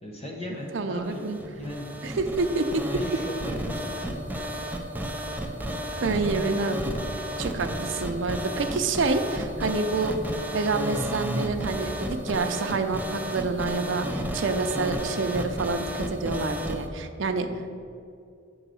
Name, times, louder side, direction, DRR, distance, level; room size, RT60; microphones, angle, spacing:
voice 1, 0.0-1.9 2.9-4.2 17.5-17.6, left 1 dB, 35° left, -2 dB, 1.0 m, -38 dB
voice 2, 0.7-1.4 2.0-2.9 6.0-6.8 7.4-17.5, right 3 dB, 70° right, 7 dB, 0.6 m, -28 dB
sound 1, 1.0-16.8, equal, 10° right, 0.5 m, -32 dB
8.0 x 3.9 x 6.2 m, 2.4 s
head